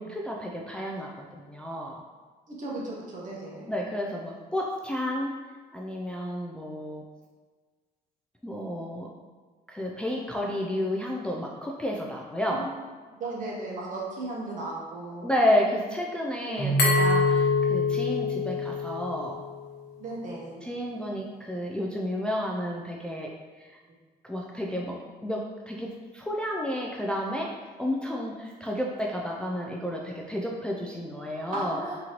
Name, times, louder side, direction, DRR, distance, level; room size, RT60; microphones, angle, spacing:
voice 1, 0.0-2.0 3.7-5.4 5.7-7.0 8.4-9.1 9.7-12.6 15.2-19.3 20.6-23.3 23.6-23.7 24.2-27.5 27.8-31.8, left 1 dB, 5° left, -2 dB, 0.3 m, -31 dB
voice 2, 2.5-3.7 12.5-12.7 13.2-15.3 16.5-16.8 20.0-20.7 31.5-32.0, right 2 dB, 50° right, -4 dB, 1.1 m, -36 dB
Keyboard (musical), 16.6-19.5, right 2 dB, 35° left, 0.8 m, -29 dB
Glass, 16.8-19.6, left 5 dB, 85° left, 1.0 m, -26 dB
3.7 x 2.9 x 2.9 m, 1.4 s
cardioid pair, 110°, 17 cm